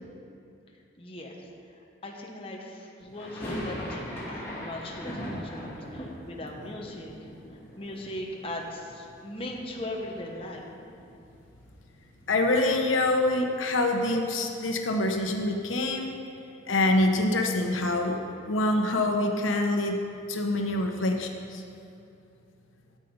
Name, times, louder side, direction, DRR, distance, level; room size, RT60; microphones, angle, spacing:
voice 1, 1.0-7.3 7.8-10.7, left 1 dB, 30° left, -1 dB, 1.2 m, -39 dB
sound 1, 3.1-9.1 9.3-10.2 10.5-10.6 10.8-13.0, equal, 10° left, 2.6 m, -40 dB
voice 2, 12.3-16.1 16.7-18.2 18.5-20.0 20.3-21.6, left 2 dB, 85° left, 3 dB, 1.0 m, -25 dB
13.0 x 8.2 x 5.4 m, 2.6 s
head